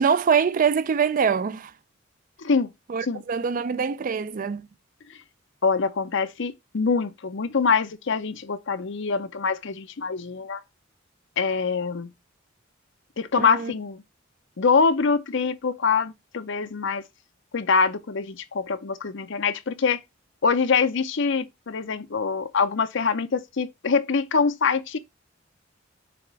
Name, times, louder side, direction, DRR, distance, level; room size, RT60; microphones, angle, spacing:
voice 1, 0.0-1.7 2.9-4.7 13.4-13.7, right 6 dB, 45° right, 0.4 m, -24 dB
voice 2, 2.4-2.7 3.1-3.2 5.6-10.6 11.4-12.1 13.2-14.0 14.6-17.0 17.5-20.0 20.4-25.0, left 5 dB, 65° left, 0.7 m, -24 dB
7.0 x 3.0 x 4.7 m
head